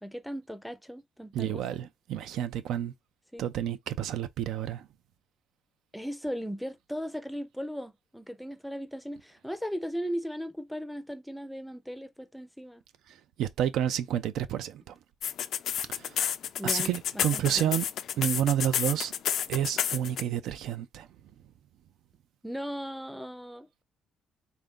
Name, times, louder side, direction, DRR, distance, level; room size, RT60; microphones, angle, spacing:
voice 1, 0.0-1.8 3.3-3.5 5.9-12.8 16.6-17.8 22.4-23.7, equal, ahead, 0.5 m, -37 dB
voice 2, 1.3-2.9 3.4-4.9 13.4-14.9 15.9-16.1 16.6-17.9 18.2-19.1 19.5-21.1, right 10 dB, 70° right, 0.4 m, -30 dB
sound 1, 15.2-20.2, left 9 dB, 60° left, 0.3 m, -30 dB
3.5 x 2.5 x 3.6 m
cardioid pair, 120°, 0 cm